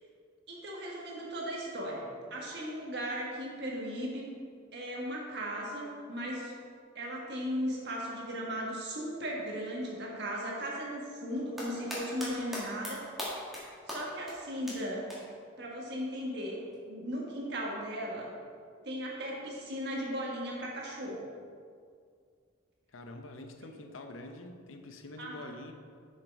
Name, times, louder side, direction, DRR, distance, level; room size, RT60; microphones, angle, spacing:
voice 1, 0.5-4.2 4.7-6.5 6.9-13.1 13.9-15.0 15.6-16.6 16.9-18.3 18.8-21.2 25.2-25.5, equal, 55° right, -2 dB, 1.7 m, -37 dB
sound 1, 11.3-12.3 12.5-12.9 13.2-13.6 13.9-14.0 14.3-14.4 14.7-14.8 15.1-15.2 16.7-16.8, equal, ahead, 1.8 m, -38 dB
voice 2, 22.9-25.7, left 2 dB, 85° left, 5 dB, 0.8 m, -46 dB
6.7 x 6.5 x 4.8 m, 2.1 s
head